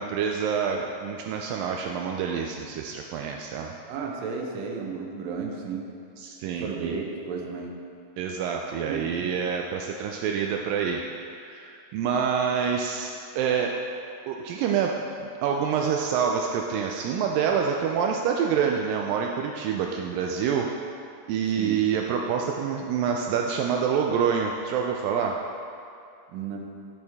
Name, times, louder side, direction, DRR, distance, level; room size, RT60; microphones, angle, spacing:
voice 1, 0.0-3.7 6.2-7.0 8.2-13.8 14.3-20.7 21.3-25.4, right 7 dB, 90° right, 1 dB, 1.9 m, -27 dB
voice 2, 3.9-5.9 6.6-7.7 8.9-9.3 17.5-17.6 21.6-21.8 26.3-26.7, right 5 dB, 75° right, 0 dB, 2.3 m, -33 dB
10.5 x 6.2 x 3.5 m, 2.5 s
omnidirectional pair, 4.5 m